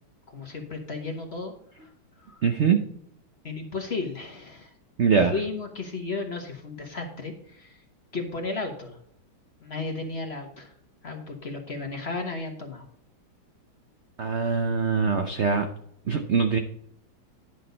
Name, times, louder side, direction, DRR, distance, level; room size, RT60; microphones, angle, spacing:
voice 1, 0.3-1.5 1.8-1.9 2.2-2.5 3.4-4.7 5.3-7.8 8.1-9.0 9.6-10.7 11.0-12.8, left 3 dB, 35° left, 4 dB, 1.2 m, -34 dB
voice 2, 2.4-2.8 5.0-5.4 14.2-15.7 16.1-16.6, right 5 dB, 75° right, 5 dB, 0.6 m, -22 dB
10.5 x 6.2 x 4.0 m, 0.69 s
omnidirectional pair, 2.3 m